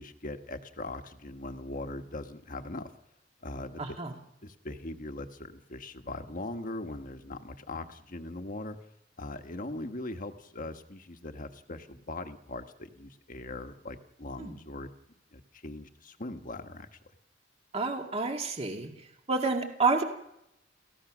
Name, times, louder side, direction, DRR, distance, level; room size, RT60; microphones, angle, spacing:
voice 1, 0.0-2.9 3.4-3.8 4.4-8.8 9.2-14.9 15.3-17.0, left 2 dB, 45° left, 7 dB, 1.4 m, -40 dB
voice 2, 3.8-4.1 14.4-14.5 17.7-18.9 19.3-20.0, right 4 dB, 35° right, 3 dB, 2.1 m, -29 dB
30.0 x 15.5 x 6.2 m, 0.83 s
head